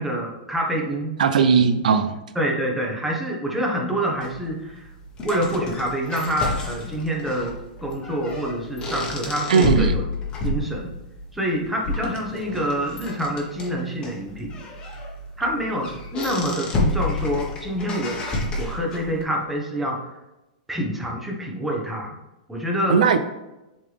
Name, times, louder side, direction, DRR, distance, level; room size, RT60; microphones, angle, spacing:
voice 1, 0.0-1.2 2.3-4.9 5.2-7.5 7.8-10.0 10.4-10.9 11.3-14.5 15.4-20.1 20.7-22.1 22.5-23.0, equal, 5° right, -1 dB, 1.2 m, -26 dB
voice 2, 1.2-2.2 9.5-9.9 22.9-23.2, right 6 dB, 85° right, 10 dB, 0.5 m, -18 dB
sound 1, 4.2-19.2, left 2 dB, 20° left, 1.3 m, -30 dB
7.3 x 4.0 x 3.5 m, 0.99 s
hypercardioid pair, 140°, 4 cm